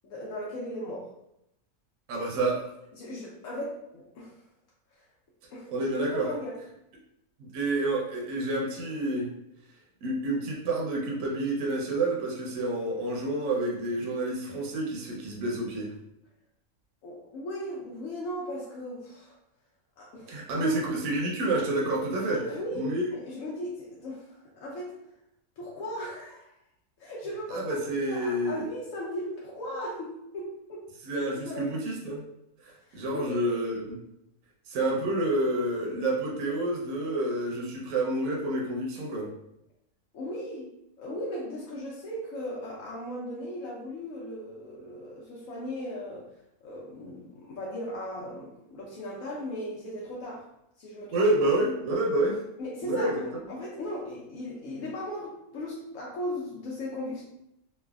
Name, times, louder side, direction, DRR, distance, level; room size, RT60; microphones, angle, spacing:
voice 1, 0.0-1.1 3.0-4.3 5.5-5.8 6.2-6.5 17.0-19.4 20.0-20.3 20.6-20.7 22.3-24.9 25.6-26.5 27.0-30.8 31.5-31.7 32.8-33.6 40.1-40.7 41.0-46.3 46.6-50.4 50.8-51.2 52.6-57.2, left 1 dB, 70° left, -5 dB, 0.9 m, -37 dB
voice 2, 2.1-2.7 5.7-6.3 7.4-9.3 10.0-15.9 20.3-22.4 22.7-23.0 27.5-28.7 31.0-32.2 32.6-33.8 34.7-39.3 51.1-52.4 52.8-53.2, right 2 dB, 70° right, -2 dB, 1.0 m, -28 dB
3.2 x 2.0 x 2.2 m, 0.82 s
omnidirectional pair, 1.6 m